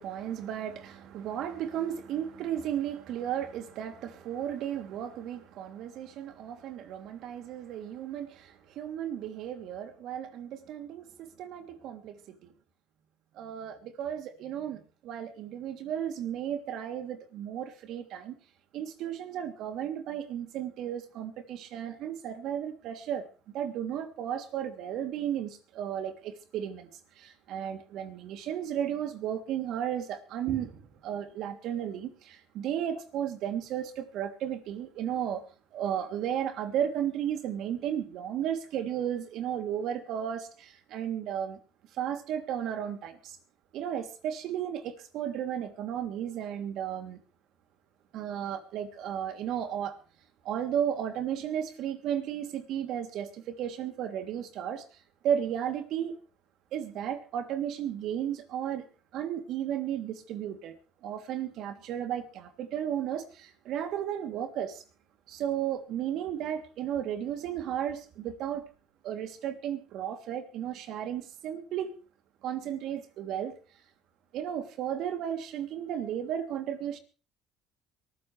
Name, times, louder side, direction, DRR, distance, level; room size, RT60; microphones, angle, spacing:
voice 1, 0.0-12.4 13.3-18.4 18.7-23.3 23.5-26.9 27.1-35.4 35.7-41.6 41.9-43.4 43.7-47.2 48.1-50.0 50.4-54.8 55.2-56.2 56.7-58.9 59.1-60.7 61.0-64.8 65.3-68.7 69.0-71.9 72.4-73.6 74.3-77.0, right 9 dB, 65° right, 3.0 m, -34 dB
23.0 x 14.5 x 3.4 m
supercardioid pair, 85°, 0 cm